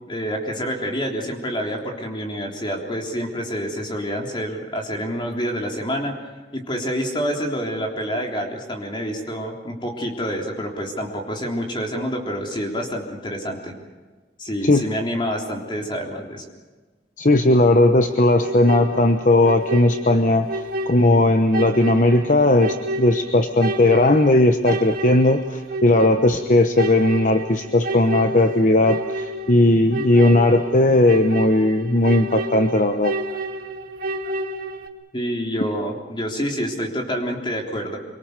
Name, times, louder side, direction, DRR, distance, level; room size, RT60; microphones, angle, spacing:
voice 1, 0.1-6.1 6.5-13.7 14.4-16.4 35.1-38.0, equal, 25° left, 1 dB, 3.6 m, -27 dB
voice 2, 17.2-33.2, left 2 dB, 45° left, 8 dB, 1.0 m, -17 dB
sound 1, 18.4-34.9, right 1 dB, 55° right, 1.8 m, -30 dB
25.5 x 24.0 x 6.7 m, 1.3 s
head